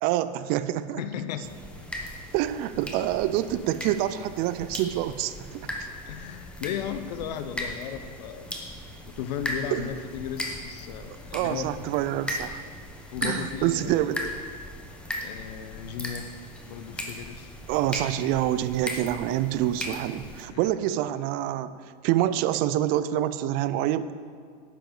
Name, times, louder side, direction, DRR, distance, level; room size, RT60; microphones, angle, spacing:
voice 1, 0.0-1.0 2.3-5.6 9.7-9.9 11.3-12.6 13.2-14.3 17.7-21.7 22.0-24.1, right 13 dB, 45° right, 14 dB, 0.4 m, -26 dB
voice 2, 1.0-1.5 6.1-8.5 9.2-11.6 13.1-14.1 15.1-16.3 16.7-17.5 20.5-20.7, left 9 dB, 85° left, 10 dB, 0.7 m, -35 dB
sound 1, 1.4-20.4, left 1 dB, 5° left, 0.9 m, -38 dB
10.0 x 7.0 x 3.8 m, 2.1 s
supercardioid pair, 135°, 21 cm